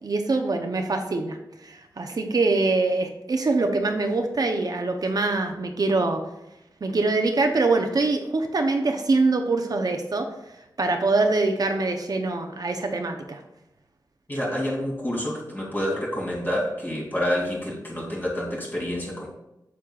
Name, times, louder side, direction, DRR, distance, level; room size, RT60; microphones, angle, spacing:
voice 1, 0.0-6.2 6.8-10.3 10.8-13.4, right 3 dB, 55° right, 5 dB, 0.7 m, -24 dB
voice 2, 14.3-19.3, equal, 25° left, -4 dB, 2.7 m, -28 dB
8.4 x 7.3 x 2.4 m, 0.89 s
wide cardioid pair, 110°, 8 cm